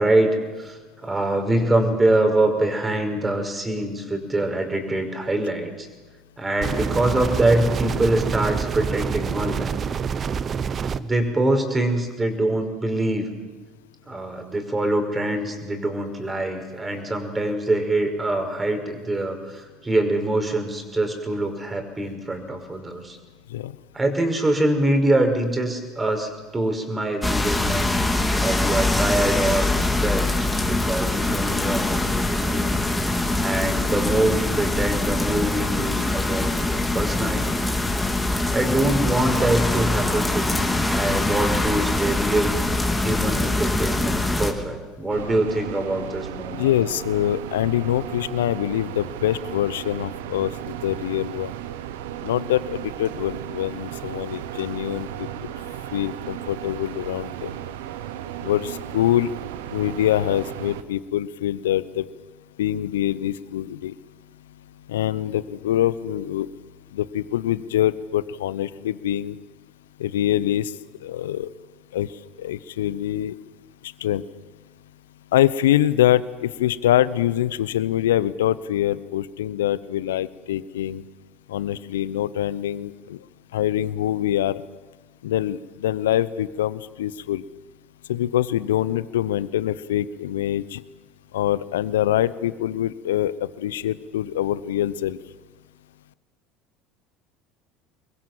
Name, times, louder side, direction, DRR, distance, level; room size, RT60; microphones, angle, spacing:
voice 1, 0.0-5.9 6.4-9.8 11.0-13.3 14.1-23.2 23.9-30.3 30.6-32.7 33.0-37.7 38.2-46.7, right 1 dB, 20° right, 6 dB, 5.4 m, -24 dB
sound 1, 6.6-11.0, right 6 dB, 35° right, 1.0 m, -27 dB
sound 2, 27.2-44.5, left 2 dB, 10° left, 3.4 m, -23 dB
sound 3, 45.1-60.8, right 12 dB, 75° right, 1.1 m, -35 dB
voice 2, 46.5-51.5 52.2-55.3 55.9-57.5 58.4-59.3 59.7-62.0 62.6-63.9 64.9-66.5 66.9-69.4 70.0-70.7 71.0-71.5 71.9-72.1 72.4-73.3 73.8-74.2 75.3-81.0 81.5-83.2 83.5-84.6 85.2-87.4 88.1-90.8 91.3-95.2, left 12 dB, 75° left, 18 dB, 0.8 m, -24 dB
25.5 x 22.0 x 7.5 m, 1.3 s
hypercardioid pair, 70°, 0 cm